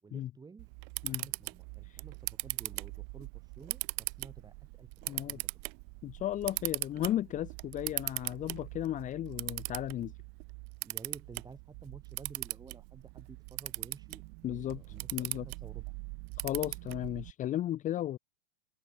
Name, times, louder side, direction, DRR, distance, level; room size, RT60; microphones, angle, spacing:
voice 1, 0.0-0.7 1.2-5.7 10.8-14.2 14.5-16.0, right 5 dB, 10° right, 5.6 m, -52 dB
Camera, 0.6-17.3, right 40 dB or more, 45° right, 2.4 m, -40 dB
voice 2, 5.1-5.4 6.0-10.1 14.4-14.8 15.1-15.5 16.4-18.2, left 12 dB, 25° left, 1.0 m, -35 dB
hypercardioid pair, 130°, 31 cm